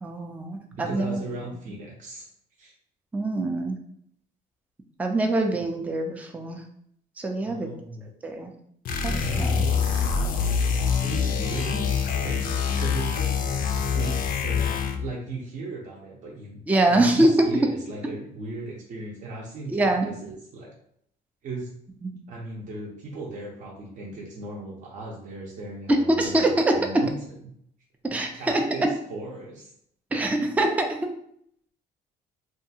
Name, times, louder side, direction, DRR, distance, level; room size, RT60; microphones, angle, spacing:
voice 1, 0.0-1.2 3.1-3.8 5.0-6.6 7.2-7.7 8.2-8.5 9.0-9.5 16.7-17.3 19.7-20.1 25.9-27.0 28.0-28.6 30.1-31.0, right 1 dB, 10° right, 3 dB, 0.3 m, -24 dB
voice 2, 0.7-2.3 2.6-2.7 5.5-5.6 7.4-8.1 9.2-10.1 11.0-13.4 13.7-16.6 16.9-20.7 21.4-21.7 22.3-27.1 27.4-27.5 28.3-29.7, right 2 dB, 50° right, -3 dB, 0.6 m, -37 dB
sound 1, 8.9-15.1, left 6 dB, 55° left, 0.4 m, -25 dB
2.6 x 2.3 x 2.7 m, 0.69 s
cardioid pair, 110°, 17 cm